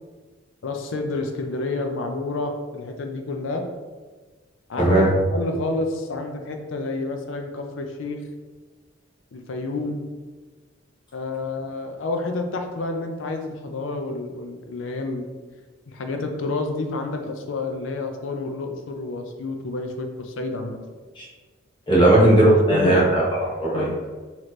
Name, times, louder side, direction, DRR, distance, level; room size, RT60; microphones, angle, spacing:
voice 1, 0.6-3.6 4.7-5.0 5.3-8.2 9.3-10.1 11.1-15.3 15.9-20.8 21.9-22.1 22.5-23.0 23.7-23.9, left 2 dB, 80° left, 5 dB, 0.5 m, -29 dB
voice 2, 4.8-5.1 21.2-21.3 21.9-23.8, right 1 dB, 25° left, -6 dB, 1.0 m, -17 dB
4.0 x 3.0 x 3.1 m, 1.3 s
head